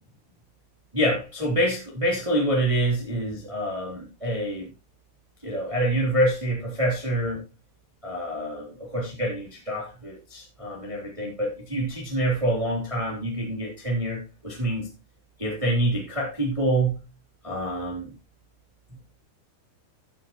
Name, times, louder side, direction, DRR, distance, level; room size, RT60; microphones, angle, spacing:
voice 1, 0.9-4.7 5.4-7.4 8.0-14.9 15.4-17.0 17.4-18.1, right 1 dB, 10° right, -2 dB, 2.7 m, -26 dB
14.5 x 7.7 x 3.1 m, 0.29 s
omnidirectional pair, 5.5 m